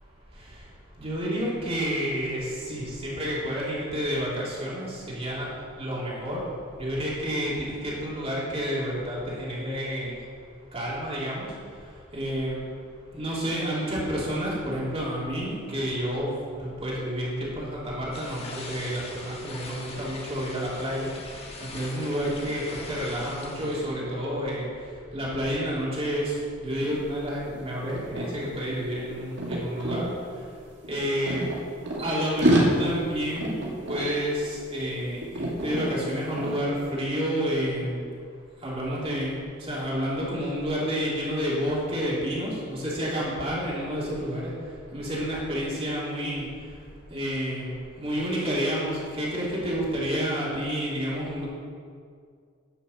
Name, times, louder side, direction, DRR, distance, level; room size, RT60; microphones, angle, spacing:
voice 1, 1.0-5.5 5.8-6.4 6.8-10.1 10.7-11.5 12.1-12.6 13.1-21.1 21.6-24.7 25.1-30.0 30.9-31.4 32.0-33.5 33.9-38.0 38.6-39.3 39.6-44.5 44.9-46.5 47.1-51.5, equal, 30° right, -6 dB, 3.1 m, -29 dB
sound 1, 18.1-23.9, left 2 dB, 30° left, 1.5 m, -42 dB
sound 2, 26.8-27.0 27.2-30.0 30.8-32.1 32.4-35.0 35.2-35.9 36.4-36.6, right 1 dB, 60° right, 2.3 m, -28 dB
10.5 x 6.7 x 7.1 m, 2.2 s
head